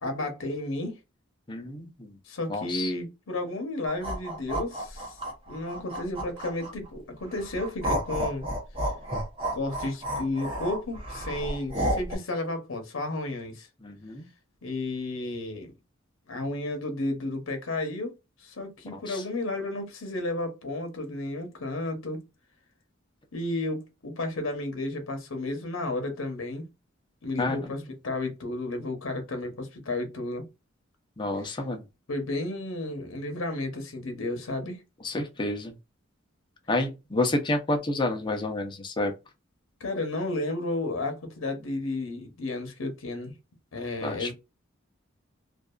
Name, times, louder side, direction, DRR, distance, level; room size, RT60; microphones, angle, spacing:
voice 1, 0.0-1.0 2.2-5.2 5.5-8.5 9.5-13.7 14.6-15.7 16.3-18.1 18.4-22.2 23.3-26.7 27.2-30.4 31.4-31.6 32.1-34.8 39.8-43.4 43.7-44.3, left 2 dB, 90° left, 0.8 m, -32 dB
voice 2, 1.5-2.2 2.5-2.9 13.8-14.3 18.9-19.2 27.4-27.7 31.2-31.8 35.0-35.7 36.7-39.1 44.0-44.3, left 2 dB, 25° left, 0.6 m, -29 dB
sound 1, 3.9-6.9 7.3-12.2, right 1 dB, 30° right, 0.9 m, -31 dB
2.6 x 2.4 x 2.2 m
head